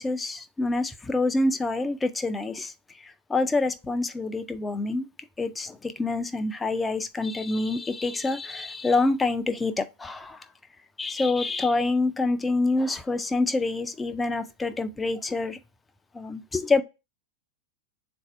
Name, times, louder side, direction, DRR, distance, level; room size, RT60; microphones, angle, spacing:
voice 1, 0.0-5.1 5.4-10.4 11.0-15.6 16.1-16.8, left 3 dB, 10° left, 0.4 m, -27 dB
3.9 x 2.6 x 4.3 m
figure-of-eight pair, 90°, 0 cm